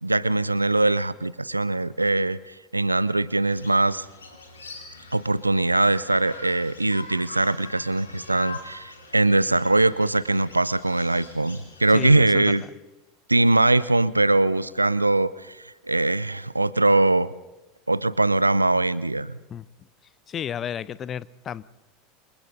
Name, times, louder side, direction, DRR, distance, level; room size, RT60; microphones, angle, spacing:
voice 1, 0.0-4.1 5.1-12.6 13.3-17.3 17.9-19.4, right 2 dB, 90° right, 20 dB, 0.6 m, -22 dB
sound 1, 3.4-12.5, left 3 dB, 80° left, 4.2 m, -44 dB
voice 2, 11.9-12.6 19.5-19.7 20.3-21.6, left 9 dB, 30° left, 20 dB, 0.7 m, -32 dB
28.5 x 25.0 x 3.9 m, 1.0 s
figure-of-eight pair, 80°, 0 cm